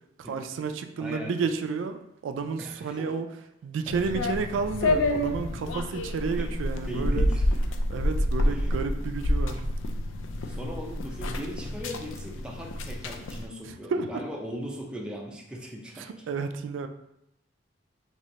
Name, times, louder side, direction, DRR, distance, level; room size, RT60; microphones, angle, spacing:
voice 1, 0.2-3.3 3.6-7.3 7.9-9.6 13.6-14.2 16.0-16.9, right 5 dB, 85° right, 7 dB, 0.3 m, -31 dB
voice 2, 1.0-1.4 2.6-3.2 6.3-6.5 6.9-7.6 8.5-8.8 10.5-16.1, equal, 5° right, -1 dB, 0.4 m, -39 dB
sound 1, 3.9-13.5, left 1 dB, 90° left, 0.4 m, -28 dB
2.9 x 2.8 x 3.2 m, 0.83 s
head